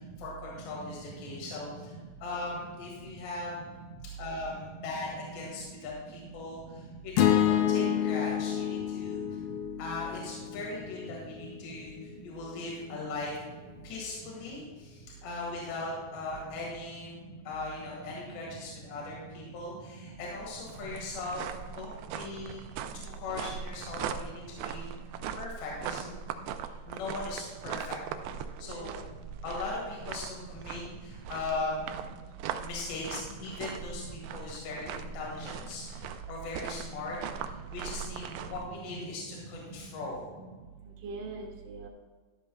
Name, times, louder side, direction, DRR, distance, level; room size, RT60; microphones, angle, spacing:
voice 1, 0.2-1.9 2.2-3.6 4.2-9.2 9.8-13.4 13.8-17.2 17.5-21.4 21.8-22.6 22.9-24.8 25.4-26.1 26.6-28.0 28.6-29.1 29.4-31.9 32.6-40.3, left 3 dB, 75° left, -3 dB, 3.9 m, -39 dB
voice 2, 0.7-1.9 2.9-3.0 3.5-4.0 4.9-5.8 7.3-7.9 9.3-9.5 10.3-11.8 12.1-12.3 12.9-13.1 13.7-13.8 16.4-16.8 17.2-17.4 17.8-18.6 19.0-19.8 20.7-20.9 21.1-21.3 23.9-24.1 28.6-29.0 30.3-30.4 30.8-31.0 31.8-32.2 33.2-33.5 33.9-34.4 34.7-34.9 36.9-37.6 38.1-38.3 38.6-39.6 40.3-40.5 41.0-41.9, right 3 dB, 65° right, -3 dB, 2.4 m, -46 dB
sound 1, 7.2-11.4, left 10 dB, 90° left, 2.0 m, -28 dB
sound 2, 20.4-38.6, right 8 dB, 85° right, 2.2 m, -40 dB
14.0 x 11.5 x 2.3 m, 1.4 s
omnidirectional pair, 5.1 m